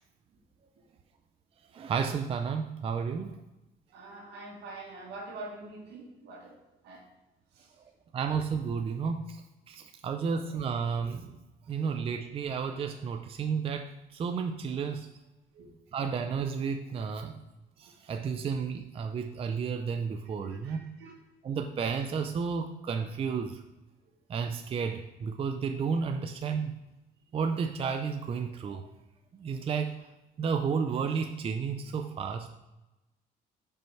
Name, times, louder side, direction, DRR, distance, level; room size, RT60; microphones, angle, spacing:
voice 1, 1.7-3.4 7.8-7.9 8.1-9.4 9.7-11.4 11.7-15.1 15.9-17.4 17.8-20.9 21.4-23.6 24.3-26.8 27.3-28.8 29.3-30.1 30.4-32.5, right 6 dB, 35° right, 5 dB, 0.5 m, -32 dB
voice 2, 3.9-6.5 6.8-7.0 7.6-7.7 10.3-10.4 12.7-12.8 15.5-15.7 20.4-21.1, right 2 dB, 80° right, -1 dB, 1.9 m, -45 dB
5.4 x 4.5 x 5.6 m, 0.99 s
cardioid pair, 110°, 17 cm